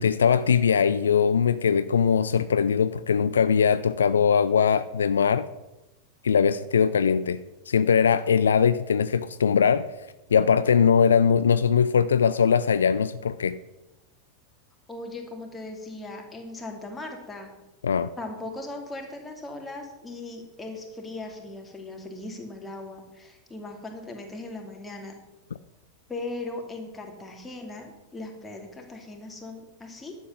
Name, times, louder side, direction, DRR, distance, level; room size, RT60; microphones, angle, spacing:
voice 1, 0.0-5.5 6.2-9.9 10.3-13.6 17.8-18.1, left 7 dB, 70° left, 15 dB, 0.4 m, -21 dB
voice 2, 14.9-17.5 18.2-25.1 26.1-30.2, left 2 dB, 10° left, 2 dB, 2.6 m, -38 dB
11.5 x 7.8 x 6.4 m, 1.0 s
figure-of-eight pair, 90°, 0 cm